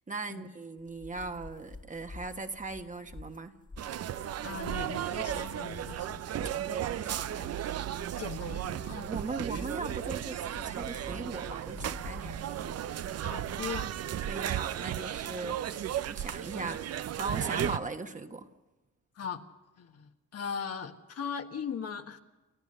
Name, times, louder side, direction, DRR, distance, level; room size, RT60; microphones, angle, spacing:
voice 1, 0.1-3.5 6.6-7.5 8.9-12.7 14.2-18.5, right 3 dB, 25° right, 6 dB, 1.4 m, -39 dB
sound 1, 0.8-13.1, left 3 dB, 25° left, 1.7 m, -49 dB
sound 2, 3.8-17.8, right 11 dB, 55° right, 0.7 m, -35 dB
voice 2, 4.4-6.2 8.2-9.1 9.5-9.6 13.2-13.9 17.6-17.7 19.2-19.4 19.8-22.2, left 6 dB, 55° left, 5 dB, 1.5 m, -39 dB
29.5 x 13.0 x 6.7 m, 1.1 s
cardioid pair, 90°, 30 cm